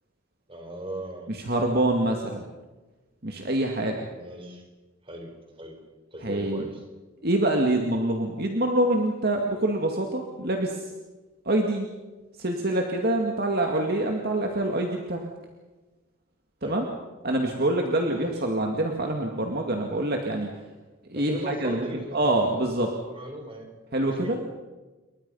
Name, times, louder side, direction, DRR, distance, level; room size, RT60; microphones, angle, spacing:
voice 1, 0.5-1.3 4.1-4.6 5.0-5.3 5.6-5.8 6.1-6.8 16.6-16.8 18.1-18.4 21.1-22.7 23.1-23.7 24.1-24.4, right 1 dB, 25° right, 4 dB, 4.5 m, -38 dB
voice 2, 1.3-2.4 3.2-4.1 6.2-6.6 7.2-10.8 11.5-11.9 12.4-15.3 16.6-16.8 17.2-20.5 21.1-21.8 22.1-22.9 23.9-24.4, right 1 dB, 50° right, 2 dB, 2.3 m, -25 dB
29.0 x 23.0 x 5.6 m, 1.2 s
head